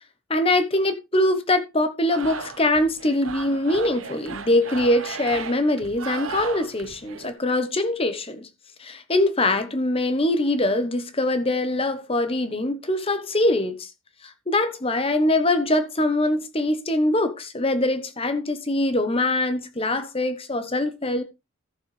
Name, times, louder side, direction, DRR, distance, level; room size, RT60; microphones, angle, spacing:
voice 1, 0.3-8.5 8.8-13.9 14.2-21.2, left 1 dB, 25° left, 1.1 m, -23 dB
sound 1, 2.1-7.3, right 5 dB, 75° right, 1.1 m, -36 dB
14.0 x 7.2 x 3.3 m
head